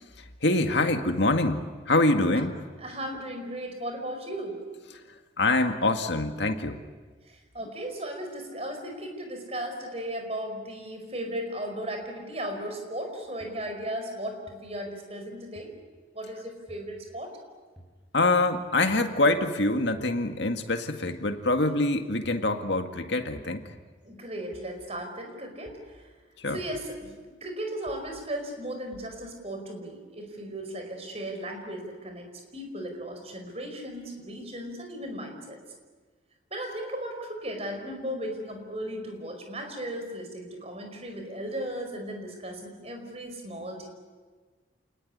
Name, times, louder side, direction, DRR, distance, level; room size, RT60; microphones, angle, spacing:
voice 1, 0.4-2.6 5.4-6.8 18.1-23.6 26.4-26.6, left 2 dB, 70° left, 6 dB, 2.0 m, -25 dB
voice 2, 2.8-4.6 7.2-15.7 16.1-17.3 24.0-26.1 26.5-27.1 27.4-32.3 32.5-35.6 36.5-43.9, right 1 dB, 35° right, 5 dB, 5.0 m, -36 dB
sound 1, 13.4-13.5 14.5-14.6 15.6-15.7 16.7-16.8 17.8-17.9 18.9-19.1 19.9-20.2 21.1-21.3 22.2-22.5 23.4-23.6 24.5-24.7 25.7-25.9 26.7-27.0 27.9-28.1 28.9-29.1, equal, ahead, 6.7 m, -52 dB
28.5 x 20.0 x 9.9 m, 1.4 s
head